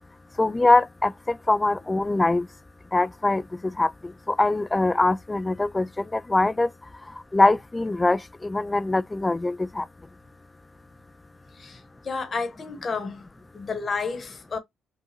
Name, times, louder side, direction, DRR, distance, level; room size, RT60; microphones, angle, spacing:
voice 1, 0.4-2.5 2.9-6.7 7.3-9.9, left 2 dB, 15° left, 0.3 m, -23 dB
voice 2, 11.5-13.2 13.5-14.6, left 4 dB, 40° left, 1.3 m, -31 dB
4.6 x 2.5 x 2.9 m
cardioid pair, 90°, 0 cm